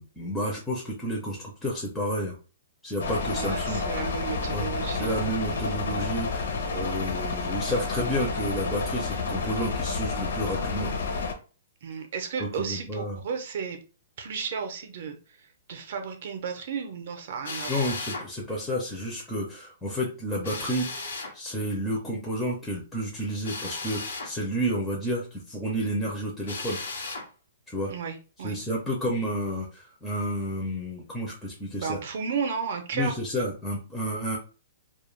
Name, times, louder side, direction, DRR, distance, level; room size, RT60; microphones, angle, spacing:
voice 1, 0.0-2.4 2.8-3.8 4.5-4.7 4.9-10.9 12.4-13.2 17.7-20.9 21.3-26.8 27.7-27.9 28.4-32.0 32.9-34.4, equal, 5° left, -3 dB, 0.4 m, -30 dB
sound 1, 3.0-11.3, left 4 dB, 65° left, 0.6 m, -30 dB
voice 2, 3.3-5.1 5.5-5.7 11.8-13.8 14.2-15.2 15.7-17.8 27.9-28.6 31.8-33.1, right 6 dB, 45° right, 5 dB, 0.6 m, -33 dB
Drill, 17.4-18.3 20.4-21.3 23.4-24.3 26.4-27.3, left 3 dB, 85° left, 1.0 m, -35 dB
2.3 x 2.1 x 3.1 m, 0.35 s
hypercardioid pair, 175°, 0 cm